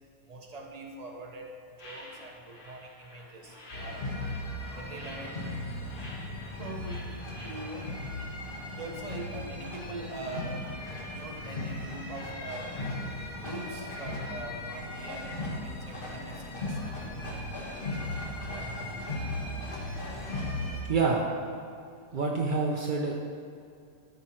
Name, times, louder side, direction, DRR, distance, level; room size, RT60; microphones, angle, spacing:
voice 1, 0.2-4.1 4.7-5.7 6.6-8.0 8.7-12.8 13.4-17.2 18.4-19.4, right 2 dB, 30° right, 1 dB, 0.9 m, -43 dB
sound 1, 1.8-7.9, left 1 dB, 70° left, 2.2 m, -50 dB
sound 2, 3.7-20.8, left 1 dB, 35° left, 1.4 m, -37 dB
voice 2, 20.9-21.2 22.1-23.2, right 4 dB, 50° right, -1 dB, 0.6 m, -27 dB
13.5 x 6.7 x 4.4 m, 2.4 s
omnidirectional pair, 1.9 m